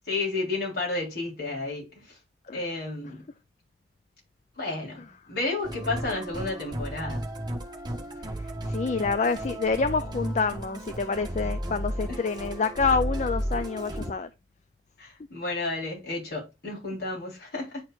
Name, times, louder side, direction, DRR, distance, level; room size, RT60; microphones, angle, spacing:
voice 1, 0.1-2.2 2.5-3.2 4.6-7.3 12.1-12.2 15.0-17.8, left 3 dB, 60° left, 3.9 m, -32 dB
Musical instrument, 5.6-14.1, equal, 25° right, 1.2 m, -34 dB
voice 2, 8.3-14.3, left 4 dB, 40° left, 0.4 m, -27 dB
10.0 x 4.4 x 2.4 m
head